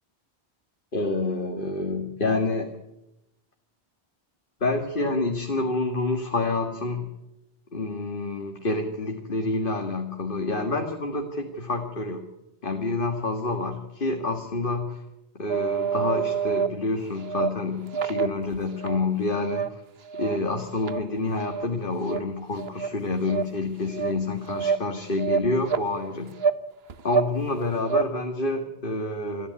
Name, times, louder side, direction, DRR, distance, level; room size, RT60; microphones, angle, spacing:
voice 1, 0.9-2.7 4.6-7.2 7.7-12.2 12.6-15.0 15.3-19.8 20.1-26.3 27.0-29.5, left 2 dB, 50° left, 2 dB, 2.0 m, -28 dB
sound 1, 15.5-16.7 17.2-17.5 17.9-19.0 19.4-19.7 20.0-20.4 20.8-21.0 21.4-21.7 22.1-22.2 22.6-22.9 23.3-23.4 23.9-24.1 24.5-24.8 25.2-25.9 26.4-26.6 26.9-27.3 27.6-28.0, right 6 dB, 65° right, 1.2 m, -27 dB
27.5 x 11.0 x 9.5 m, 0.89 s
omnidirectional pair, 1.1 m